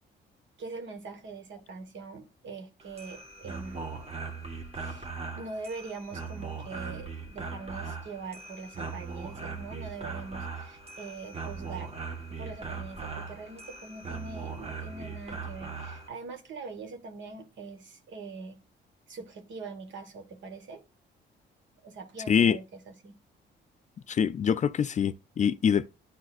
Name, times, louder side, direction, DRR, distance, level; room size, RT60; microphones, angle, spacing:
voice 1, 0.6-3.8 4.7-11.9 12.3-18.6 19.1-20.8 21.8-23.1, right 4 dB, 70° right, 1.5 m, -42 dB
sound 1, 2.8-16.1, right 4 dB, 30° right, 1.5 m, -39 dB
voice 2, 22.3-22.6 24.1-25.9, left 7 dB, 40° left, 0.4 m, -24 dB
10.5 x 4.0 x 2.5 m
cardioid pair, 90°, 20 cm